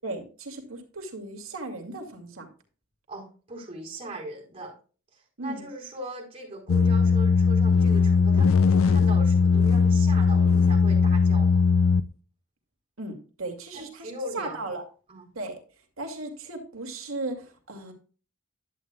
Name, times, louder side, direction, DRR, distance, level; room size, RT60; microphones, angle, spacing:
voice 1, 0.0-2.5 5.4-5.7 13.0-14.8 15.3-15.6 16.0-17.9, right 2 dB, 85° right, 4 dB, 2.4 m, -36 dB
voice 2, 3.1-4.7 5.1-11.6 13.7-14.7 15.1-15.3, right 1 dB, 30° right, -1 dB, 4.6 m, -39 dB
sound 1, 6.7-12.1, left 5 dB, 75° left, 0.5 m, -19 dB
11.0 x 8.8 x 2.3 m, 0.36 s
head